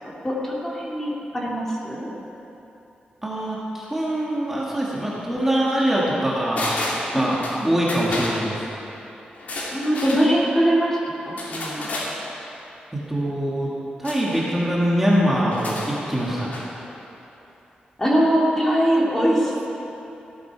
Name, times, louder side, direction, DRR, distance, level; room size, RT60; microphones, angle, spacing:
voice 1, 0.0-2.1 7.1-7.7 9.7-11.9 18.0-19.7, equal, 15° left, -4 dB, 2.3 m, -22 dB
voice 2, 3.2-7.4 7.6-8.6 12.9-13.7 14.0-16.5, equal, 10° right, -6 dB, 1.9 m, -23 dB
sound 1, 6.5-7.6 7.9-8.4 9.3-10.2 11.4-12.1 14.0-14.5 15.4-16.7 17.0-17.1, left 2 dB, 60° left, 2.8 m, -31 dB
16.0 x 13.0 x 4.7 m, 3.0 s
wide cardioid pair, 150°, 3 cm